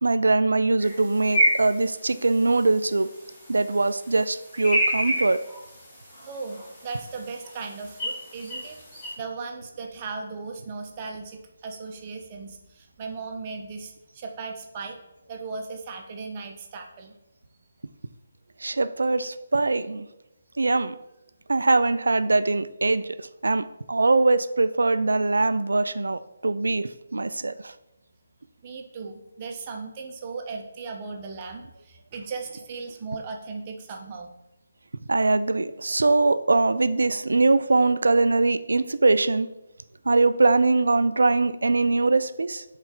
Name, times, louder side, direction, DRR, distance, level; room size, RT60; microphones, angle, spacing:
voice 1, 0.0-3.1 3.5-5.4 18.6-20.1 20.6-21.0 21.5-23.2 23.4-27.7 35.1-39.5 40.1-42.6, right 3 dB, 60° right, 13 dB, 0.3 m, -22 dB
sound 1, 0.8-9.1, equal, 10° left, 1.7 m, -30 dB
voice 2, 6.2-8.8 9.2-15.0 15.3-17.1 28.6-34.3, right 4 dB, 25° right, 3 dB, 0.7 m, -37 dB
8.0 x 3.2 x 3.8 m, 0.91 s
figure-of-eight pair, 145°, 0 cm